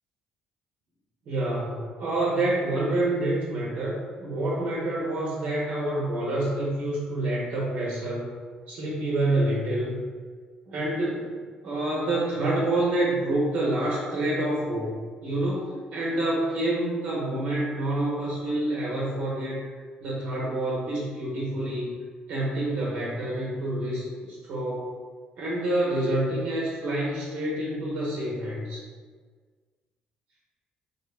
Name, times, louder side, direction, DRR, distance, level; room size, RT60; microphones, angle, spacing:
voice 1, 1.3-8.3 8.7-10.0 10.7-19.6 20.0-21.9 22.3-24.9 25.4-28.8, right 1 dB, 70° right, -5 dB, 0.6 m, -27 dB
2.6 x 2.1 x 2.3 m, 1.6 s
supercardioid pair, 75°, 3 cm